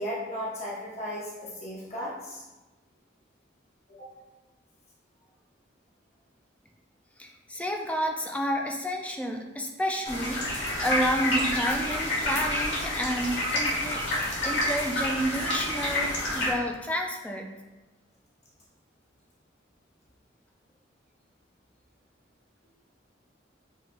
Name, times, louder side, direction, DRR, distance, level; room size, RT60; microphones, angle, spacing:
voice 1, 0.0-2.4 4.0-4.1, equal, 40° left, -6 dB, 0.8 m, -35 dB
voice 2, 7.2-17.5, equal, 5° left, 2 dB, 0.3 m, -30 dB
sound 1, 10.0-16.5, left 1 dB, 80° left, 1.2 m, -28 dB
5.5 x 3.2 x 2.5 m, 1.1 s
head